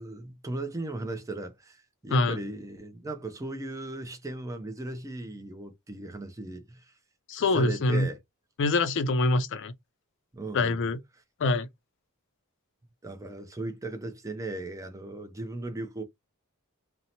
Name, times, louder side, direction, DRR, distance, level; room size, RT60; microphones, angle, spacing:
voice 1, 0.0-6.9 7.5-8.2 10.3-10.8 13.0-16.0, right 2 dB, 15° right, 0.5 m, -37 dB
voice 2, 7.3-8.1 8.6-9.7 10.5-11.0 11.4-11.7, left 2 dB, 55° left, 0.4 m, -25 dB
2.7 x 2.0 x 2.8 m
head